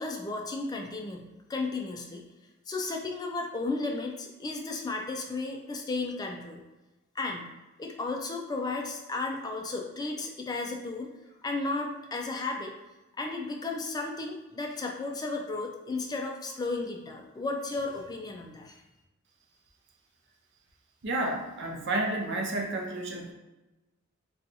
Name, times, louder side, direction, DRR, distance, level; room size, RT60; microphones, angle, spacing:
voice 1, 0.0-2.3 2.7-6.6 7.2-7.5 7.8-11.1 11.4-12.7 13.2-18.8, left 3 dB, 20° left, 1 dB, 0.3 m, -34 dB
voice 2, 21.0-23.3, right 2 dB, 60° right, 1 dB, 0.6 m, -31 dB
2.6 x 2.3 x 4.0 m, 1.0 s
head